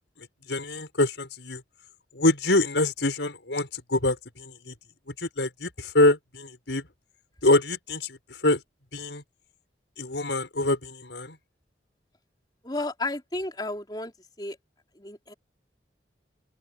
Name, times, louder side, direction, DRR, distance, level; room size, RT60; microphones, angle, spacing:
voice 1, 0.2-1.6 2.1-4.7 5.2-6.9 7.4-8.2 8.4-8.6 8.9-9.2 10.0-11.4, left 2 dB, 80° left, 5.3 m, -25 dB
voice 2, 12.6-14.1 14.4-14.6 15.0-15.3, left 2 dB, 25° left, 3.7 m, -32 dB
open air
head